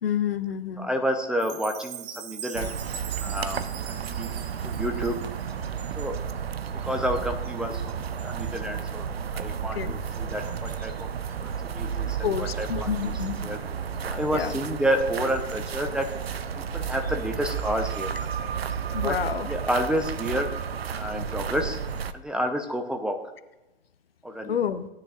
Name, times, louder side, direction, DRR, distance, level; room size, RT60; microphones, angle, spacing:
voice 1, 0.0-0.9 9.7-9.9 12.2-13.3 14.3-14.6 18.9-19.5 24.5-24.9, left 9 dB, 70° left, 13 dB, 0.8 m, -28 dB
voice 2, 0.8-2.7 3.2-4.3 4.6-5.2 6.0-6.2 6.8-11.1 11.4-13.1 13.4-13.6 14.0-16.1 16.7-18.3 19.0-19.2 19.5-20.5 20.9-21.8 22.1-23.2 24.2-24.6, equal, 5° right, 4 dB, 0.6 m, -30 dB
Chime, 1.4-5.6, right 9 dB, 40° right, 1.1 m, -41 dB
sound 1, 2.5-22.1, right 7 dB, 80° right, 0.6 m, -32 dB
16.5 x 9.9 x 2.5 m, 0.99 s
figure-of-eight pair, 105°, 30 cm